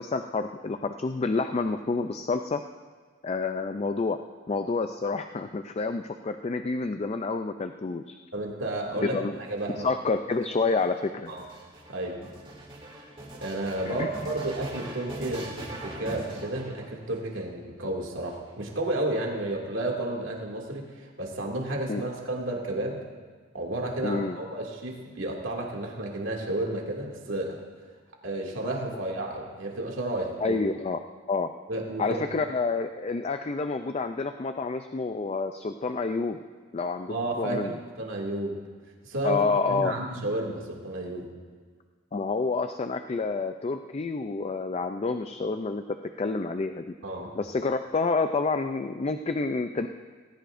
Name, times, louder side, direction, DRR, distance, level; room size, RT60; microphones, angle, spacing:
voice 1, 0.0-2.6 3.2-4.2 4.5-8.2 9.0-9.3 9.7-11.3 13.8-14.1 21.9-22.0 24.0-24.4 30.4-31.0 31.3-31.5 32.0-36.4 36.7-37.8 39.2-40.0 42.1-45.8 46.2-46.9 47.3-49.9, left 3 dB, 30° left, 7 dB, 0.4 m, -28 dB
voice 2, 8.3-9.2 9.5-9.9 11.3-11.4 11.9-12.2 13.4-23.0 23.5-27.6 28.2-30.6 31.7-32.2 37.1-38.6 39.0-41.3 47.0-47.3, right 1 dB, 85° right, -1 dB, 2.4 m, -32 dB
sound 1, 9.4-17.3 18.1-19.0, right 1 dB, 30° right, 2.4 m, -42 dB
18.5 x 17.0 x 2.6 m, 1.5 s
head